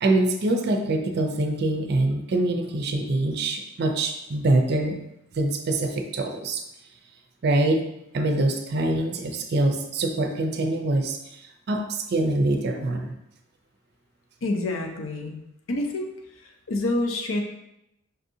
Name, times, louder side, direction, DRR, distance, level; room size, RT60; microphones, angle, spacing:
voice 1, 0.0-5.0 5.3-6.6 7.4-7.9 8.1-11.4 11.7-13.1, right 2 dB, 55° right, 4 dB, 0.4 m, -24 dB
voice 2, 14.4-15.4 15.7-16.1 16.4-17.4, left 2 dB, 75° left, 3 dB, 0.6 m, -27 dB
5.5 x 2.6 x 2.7 m, 0.84 s
head